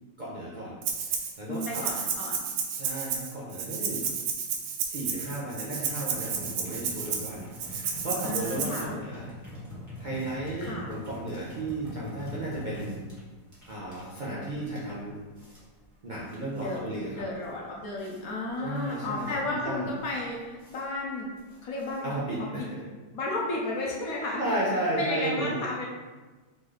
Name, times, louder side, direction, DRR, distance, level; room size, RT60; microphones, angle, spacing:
voice 1, 0.2-0.8 1.1-1.8 2.7-4.1 4.8-9.2 10.0-13.0 13.7-15.2 16.0-17.2 18.6-19.3 19.6-19.9 22.0-22.8 24.4-25.6, right 1 dB, 65° right, -6 dB, 0.4 m, -34 dB
Rattle (instrument), 0.8-1.3 1.6-8.8, right 6 dB, 90° right, 1.3 m, -32 dB
voice 2, 1.5-2.4 8.2-8.9 10.6-10.9 16.5-16.8 17.2-21.3 21.6-22.7 23.1-24.4 25.0-25.8, left 2 dB, 65° left, -2 dB, 1.0 m, -33 dB
sound 1, 6.1-22.4, equal, 10° right, 1.2 m, -44 dB
3.9 x 3.8 x 3.2 m, 1.3 s
omnidirectional pair, 1.9 m